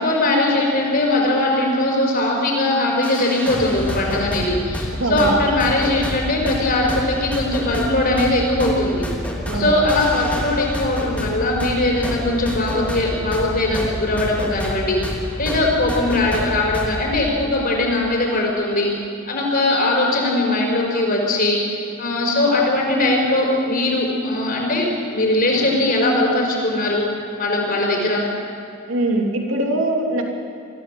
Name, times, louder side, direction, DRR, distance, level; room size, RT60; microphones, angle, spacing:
voice 1, 0.0-9.1 9.5-18.9 19.3-27.0 27.4-28.2, left 2 dB, 45° left, 0 dB, 5.4 m, -20 dB
sound 1, 3.0-17.2, equal, 5° left, 3.1 m, -28 dB
voice 2, 5.0-5.3 9.4-9.8 28.9-30.2, right 1 dB, 70° right, 1 dB, 3.0 m, -22 dB
23.0 x 15.0 x 7.7 m, 2.4 s
head